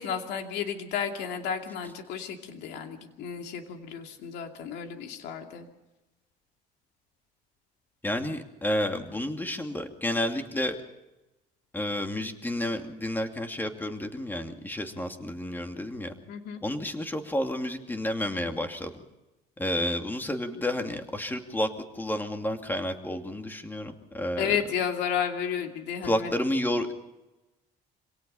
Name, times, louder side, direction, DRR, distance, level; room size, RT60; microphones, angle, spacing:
voice 1, 0.0-5.7 16.3-16.6 24.4-26.3, left 8 dB, 85° left, 4 dB, 2.6 m, -32 dB
voice 2, 8.0-10.8 11.7-16.1 16.6-19.0 19.6-21.7 21.9-24.6 26.0-26.9, left 1 dB, 10° left, 5 dB, 2.6 m, -30 dB
26.5 x 18.0 x 5.6 m, 1.0 s
cardioid pair, 110°, 17 cm